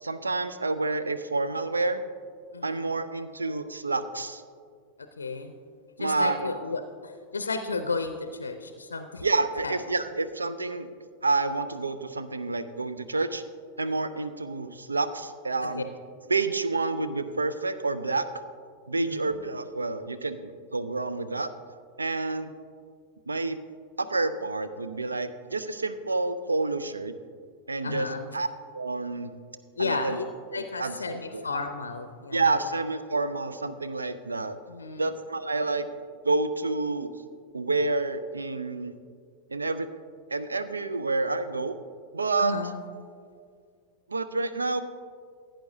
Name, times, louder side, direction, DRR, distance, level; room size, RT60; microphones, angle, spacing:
voice 1, 0.0-2.0 2.6-4.4 6.0-6.5 9.2-10.9 11.2-13.4 13.8-15.9 16.3-18.3 18.9-21.5 22.0-22.5 23.3-23.6 24.0-27.1 27.7-28.1 28.3-28.5 28.7-29.3 29.8-30.2 30.5-31.0 31.3-31.5 32.3-34.6 35.0-36.0 36.2-37.1 37.5-39.0 39.5-39.9 40.3-41.8 42.1-42.5 44.1-44.8, right 3 dB, 80° right, 11 dB, 0.5 m, -28 dB
voice 2, 2.5-2.9 5.2-5.6 6.0-9.2 9.6-9.7 15.8-15.9 18.9-19.4 27.8-28.3 29.8-30.3 30.5-32.6 34.7-35.1 42.4-42.8, left 3 dB, 75° left, 8 dB, 0.5 m, -33 dB
16.0 x 9.0 x 2.7 m, 2.1 s
figure-of-eight pair, 90°, 0 cm